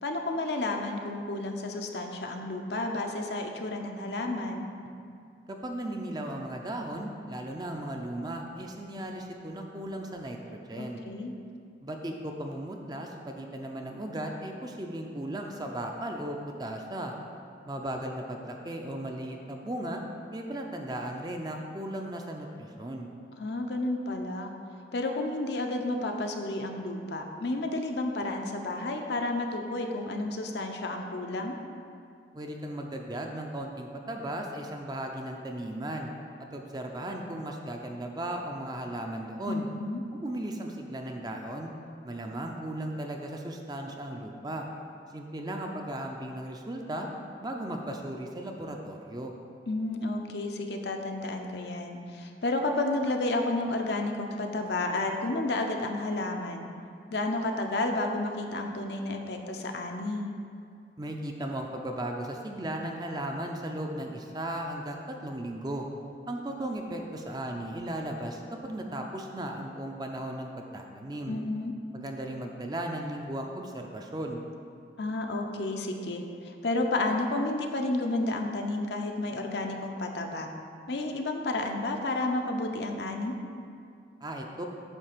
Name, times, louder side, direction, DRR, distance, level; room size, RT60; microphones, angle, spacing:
voice 1, 0.0-4.7 10.8-11.3 23.4-24.5 24.9-31.6 39.5-40.0 49.7-56.7 57.1-60.3 71.3-71.7 75.0-80.5 80.9-83.3, left 2 dB, 70° left, 3 dB, 0.7 m, -31 dB
voice 2, 5.5-11.0 11.8-17.1 17.6-20.0 20.3-23.1 32.3-36.1 36.5-39.7 40.1-41.7 42.0-44.7 45.1-47.1 47.4-49.3 61.0-65.9 66.3-71.4 72.0-74.4 84.2-84.7, right 1 dB, 20° right, 2 dB, 0.5 m, -36 dB
8.9 x 3.3 x 6.6 m, 2.4 s
head